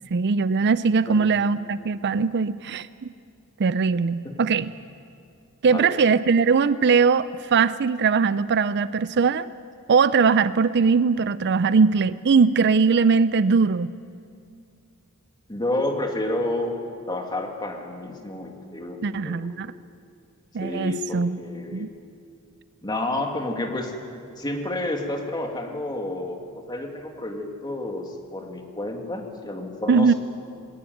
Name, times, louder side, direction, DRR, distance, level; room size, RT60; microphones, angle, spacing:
voice 1, 0.1-3.1 3.6-4.7 5.6-9.5 9.9-13.9 19.0-19.7 20.5-21.4 21.7-21.9 29.9-30.1, right 5 dB, 50° right, 15 dB, 0.4 m, -20 dB
voice 2, 15.5-16.7 17.1-19.5 20.6-21.9 22.8-23.9 24.4-26.4 26.7-30.1, left 2 dB, 20° left, 3 dB, 2.3 m, -30 dB
20.0 x 18.0 x 9.3 m, 2.4 s
head